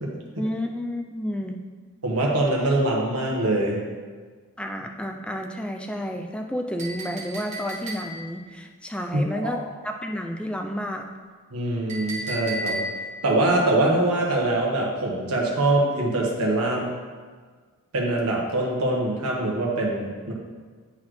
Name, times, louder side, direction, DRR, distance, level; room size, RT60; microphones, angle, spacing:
voice 1, 0.4-1.6 4.6-11.1, equal, 5° left, 3 dB, 0.4 m, -31 dB
voice 2, 2.0-3.8 9.1-9.6 11.5-12.8 13.2-16.9 17.9-20.3, right 2 dB, 80° right, -2 dB, 1.2 m, -23 dB
Chink clink, 6.8-8.4 11.9-13.2, equal, 30° right, 1.4 m, -33 dB
9.4 x 4.1 x 3.2 m, 1.5 s
head